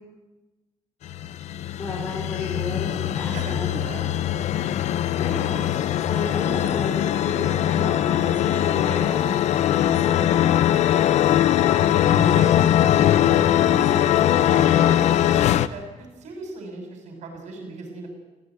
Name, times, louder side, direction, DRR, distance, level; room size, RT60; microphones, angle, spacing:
sound 1, 1.1-15.7, left 11 dB, 70° left, 0.8 m, -21 dB
voice 1, 1.8-3.8 5.1-5.6 6.0-9.3 9.7-10.4 11.6-12.4 13.0-15.1, left 2 dB, 30° left, -3 dB, 4.9 m, -33 dB
voice 2, 3.3-4.5 6.5-6.6 12.2-12.5 15.7-18.1, right 3 dB, 75° right, 3 dB, 6.7 m, -38 dB
18.0 x 17.5 x 9.4 m, 1.1 s
cardioid pair, 165°, 12 cm